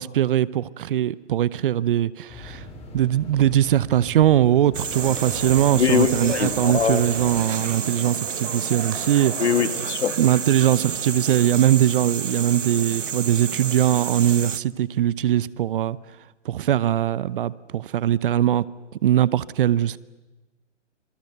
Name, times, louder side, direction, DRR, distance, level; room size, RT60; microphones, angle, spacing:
voice 1, 0.0-2.6 2.9-9.3 9.8-9.9 10.2-16.0 16.4-18.7 19.0-20.0, right 11 dB, 45° right, 0.8 m, -21 dB
sound 1, 2.3-7.4, left 2 dB, 15° left, 4.9 m, -41 dB
sound 2, 4.7-14.6, right 6 dB, 85° right, 1.0 m, -30 dB
sound 3, 4.9-11.4, right 5 dB, 25° right, 4.2 m, -38 dB
voice 2, 5.7-7.0 9.4-10.1, left 7 dB, 65° left, 2.0 m, -22 dB
26.5 x 26.0 x 8.0 m
figure-of-eight pair, 130°, 36 cm